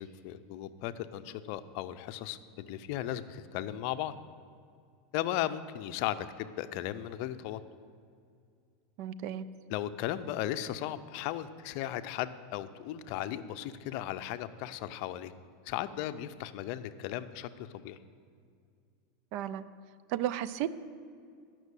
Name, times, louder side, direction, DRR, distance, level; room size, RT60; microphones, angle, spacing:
voice 1, 0.0-4.2 5.1-7.6 9.7-15.3 15.7-18.0, left 12 dB, 55° left, 12 dB, 0.5 m, -36 dB
voice 2, 9.0-9.5 19.3-19.6 20.1-20.8, right 11 dB, 55° right, 14 dB, 0.5 m, -33 dB
10.5 x 6.1 x 8.2 m, 2.3 s
supercardioid pair, 145°, 0 cm